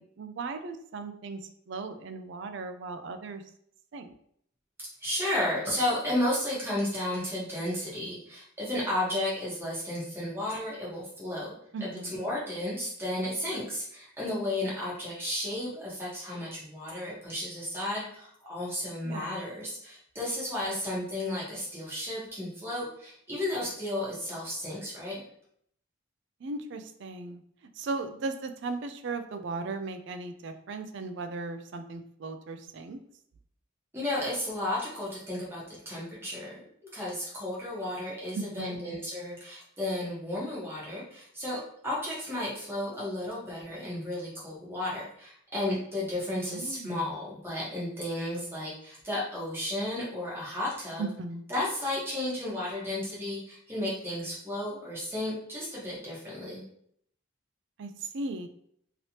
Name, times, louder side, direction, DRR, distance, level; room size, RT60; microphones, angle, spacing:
voice 1, 0.0-3.4 3.9-4.1 11.7-12.3 19.0-19.3 26.4-27.4 27.8-33.0 38.3-39.0 46.5-47.1 51.0-51.4 57.8-58.5, right 3 dB, 60° right, 9 dB, 0.4 m, -37 dB
voice 2, 5.0-11.5 11.8-25.2 33.9-36.7 36.9-51.0 51.5-56.6, left 1 dB, 10° right, -6 dB, 1.1 m, -33 dB
3.2 x 2.9 x 2.8 m, 0.67 s
head